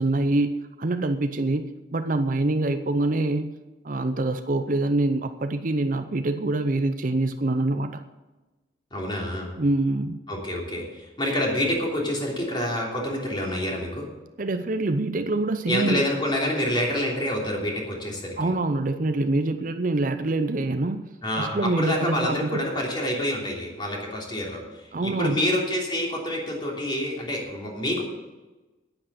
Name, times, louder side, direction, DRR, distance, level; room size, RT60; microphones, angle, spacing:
voice 1, 0.0-1.6 1.9-3.5 3.8-7.9 9.6-10.2 14.4-16.0 18.4-22.6 24.9-25.4, right 2 dB, 45° right, 9 dB, 0.6 m, -25 dB
voice 2, 8.9-9.5 10.3-14.1 15.7-18.4 21.2-28.0, left 1 dB, 25° left, -2 dB, 3.1 m, -27 dB
10.0 x 10.0 x 6.6 m, 1.1 s
head